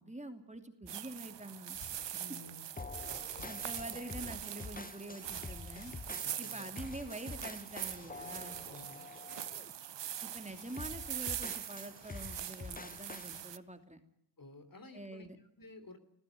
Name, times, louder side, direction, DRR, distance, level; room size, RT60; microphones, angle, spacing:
voice 1, 0.0-1.8 2.1-2.2 3.4-5.9 6.4-8.6 10.2-14.0 14.9-15.4, right 1 dB, 15° right, 6 dB, 2.7 m, -46 dB
sound 1, 0.9-13.6, right 11 dB, 75° right, 0.7 m, -43 dB
sound 2, 1.7-2.1 3.1-4.2 5.2-6.5 7.5-9.5 10.2-11.0 12.0-13.6, left 3 dB, 80° left, 5.6 m, -57 dB
voice 2, 2.2-2.7 6.2-6.8 8.6-9.1 14.4-15.3 15.6-16.0, left 2 dB, 50° left, 9 dB, 3.2 m, -53 dB
sound 3, 2.8-9.7 10.1-10.4 10.8-13.4, left 3 dB, 20° left, 0.8 m, -47 dB
20.5 x 15.0 x 9.4 m, 0.76 s
cardioid pair, 45°, 43 cm